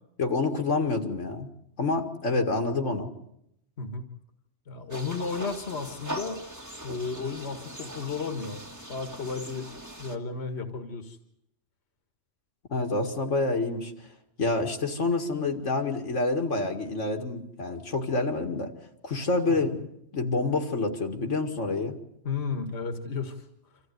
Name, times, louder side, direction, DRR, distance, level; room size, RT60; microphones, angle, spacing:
voice 1, 0.2-1.5 1.8-3.1 12.7-13.9 14.4-18.7 19.0-19.9 20.1-22.0, left 3 dB, 85° left, 4 dB, 2.4 m, -27 dB
voice 2, 4.7-6.4 6.8-8.6 8.9-9.7 10.0-11.2 19.5-19.7 22.2-23.4, left 4 dB, 60° left, 7 dB, 1.9 m, -33 dB
sound 1, 4.9-10.2, right 1 dB, 15° right, 1.8 m, -40 dB
26.5 x 15.0 x 9.4 m, 0.78 s
omnidirectional pair, 1.2 m